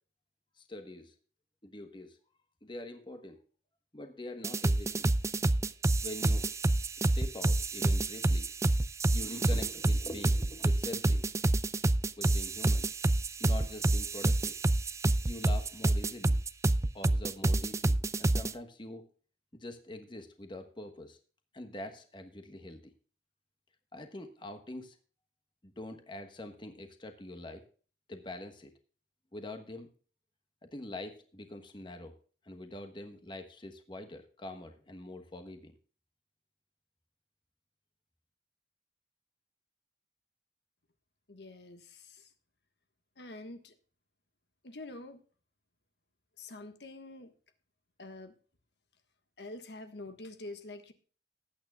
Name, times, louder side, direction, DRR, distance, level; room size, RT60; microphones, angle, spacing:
voice 1, 0.6-1.1 1.6-2.2 2.6-3.4 3.9-5.1 6.0-6.5 7.0-8.5 9.1-11.3 12.2-12.9 13.4-14.6 15.2-16.4 16.9-19.1 19.5-21.2 21.5-22.9 23.9-25.0 25.6-27.6 28.1-28.7 29.3-29.9 30.6-32.2 32.4-35.7, left 1 dB, 25° left, 7 dB, 1.2 m, -44 dB
sound 1, 4.4-18.5, right 2 dB, 15° right, 0.4 m, -28 dB
voice 2, 41.3-42.3 43.2-43.7 44.6-45.2 46.4-47.3 48.0-48.3 49.4-50.9, left 2 dB, 70° left, 8 dB, 1.4 m, -46 dB
19.5 x 8.9 x 2.3 m, 0.41 s
head